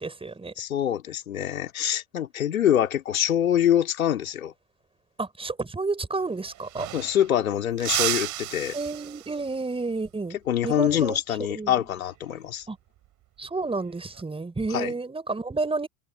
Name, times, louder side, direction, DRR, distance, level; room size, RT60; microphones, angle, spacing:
voice 1, 0.0-0.5 5.2-6.9 8.7-10.4 10.6-11.2 11.5-11.8 12.7-12.8 13.4-15.9, right 3 dB, 15° right, 5.2 m, -30 dB
voice 2, 0.6-4.5 6.9-8.8 10.5-12.7 14.7-14.9, left 10 dB, 80° left, 2.9 m, -25 dB
sound 1, 6.2-6.3 6.5-7.4 7.8-9.6 12.0-12.3 13.7-14.2, right 16 dB, 45° right, 7.1 m, -32 dB
hypercardioid pair, 80°, 41 cm